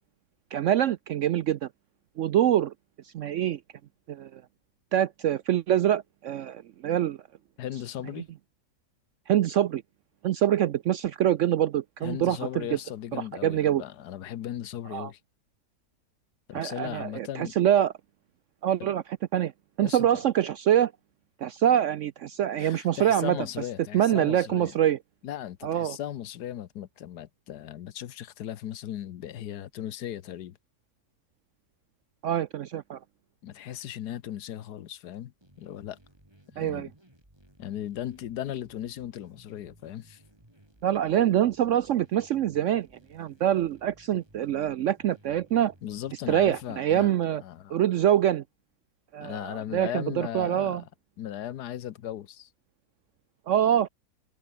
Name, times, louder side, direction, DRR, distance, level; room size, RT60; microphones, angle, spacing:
voice 1, 0.5-1.7 2.2-2.7 3.0-3.6 4.1-4.4 4.9-7.2 9.3-9.8 10.2-12.8 13.4-13.8 14.9-15.1 16.5-17.9 18.6-19.0 19.3-19.5 19.8-20.9 21.4-23.4 23.9-25.0 25.6-26.0 32.2-33.0 36.6-36.9 40.8-45.7 46.3-47.4 47.7-48.4 49.1-50.8 53.5-53.9, right 11 dB, 70° right, 0.7 m, -25 dB
voice 2, 7.6-8.3 12.0-15.2 16.5-17.5 18.8-18.9 19.8-20.2 22.6-24.8 25.2-30.6 33.4-36.0 36.5-36.9 37.6-40.2 45.8-47.1 47.4-47.8 49.2-50.9 51.2-52.5, left 11 dB, 80° left, 1.4 m, -37 dB
sound 1, 35.4-46.7, right 1 dB, 15° right, 5.2 m, -59 dB
omnidirectional pair, 1.7 m